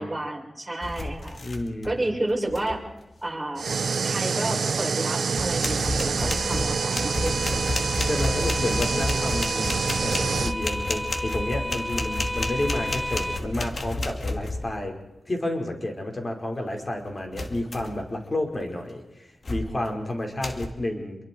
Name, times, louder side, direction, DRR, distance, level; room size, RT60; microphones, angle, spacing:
voice 1, 0.0-1.4 1.8-2.8 3.2-3.7 4.0-7.7, right 1 dB, 15° right, -2 dB, 7.5 m, -31 dB
sound 1, 0.8-2.0 2.3-2.8 4.7-4.8 5.3-14.9 17.3-18.1 18.5-18.8 19.4-19.9 20.4-20.7, left 2 dB, 60° left, 2.6 m, -31 dB
voice 2, 1.4-2.0 8.0-14.9 15.3-21.2, left 1 dB, 40° left, 2 dB, 5.4 m, -30 dB
sound 2, 3.6-10.5, right 5 dB, 85° right, 0.7 m, -27 dB
sound 3, 5.2-13.4, left 1 dB, 10° left, 1.6 m, -34 dB
28.5 x 23.5 x 4.8 m, 0.96 s
cardioid pair, 55°, 0 cm